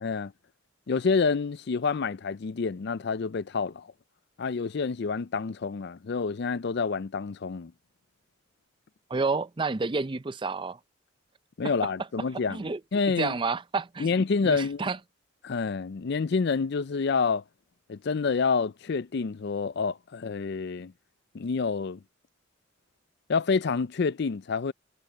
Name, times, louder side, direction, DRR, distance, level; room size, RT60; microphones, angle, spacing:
voice 1, 0.0-0.3 0.9-3.9 4.4-7.7 11.6-13.3 14.0-14.8 15.4-17.4 17.9-20.9 21.3-22.0 23.3-24.7, left 5 dB, 55° left, 0.4 m, -28 dB
voice 2, 9.1-10.8 12.5-12.8 13.1-14.1 14.4-15.0, right 4 dB, 25° right, 0.5 m, -29 dB
head